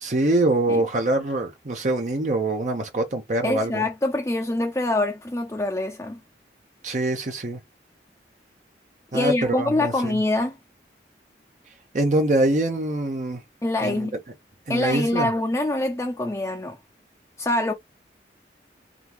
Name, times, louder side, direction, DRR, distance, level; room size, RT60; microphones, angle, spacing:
voice 1, 0.0-3.9 6.8-7.6 9.1-10.2 11.9-13.4 13.8-14.1 14.7-15.3, right 2 dB, 45° right, 0.7 m, -24 dB
voice 2, 3.4-6.2 9.1-10.6 13.6-14.2 14.7-16.8 17.4-17.7, left 2 dB, 15° left, 0.6 m, -25 dB
3.7 x 3.5 x 2.9 m
head